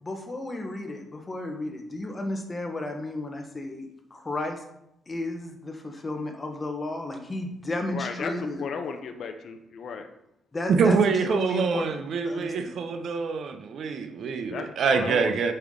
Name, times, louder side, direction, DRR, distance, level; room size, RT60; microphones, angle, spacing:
voice 1, 0.0-4.6 5.1-9.0 10.5-11.0 11.3-12.0 12.2-12.8, left 2 dB, 25° left, 4 dB, 1.1 m, -33 dB
voice 2, 7.9-10.1 14.5-15.5, left 5 dB, 60° left, 6 dB, 0.6 m, -35 dB
voice 3, 10.7-15.5, right 5 dB, 60° right, 7 dB, 0.6 m, -25 dB
5.5 x 4.5 x 3.7 m, 0.82 s
cardioid pair, 90°, 0 cm